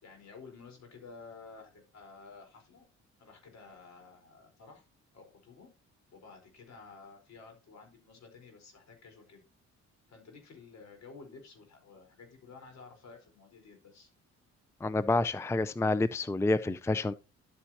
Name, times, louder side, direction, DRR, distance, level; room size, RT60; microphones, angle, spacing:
voice 1, 0.0-2.8 3.2-4.8 5.1-5.7 6.1-9.4 10.1-14.1, left 4 dB, 60° left, 4.6 m, -52 dB
voice 2, 14.8-17.1, left 2 dB, 10° left, 0.5 m, -28 dB
11.5 x 8.5 x 2.9 m
cardioid pair, 90°, 30 cm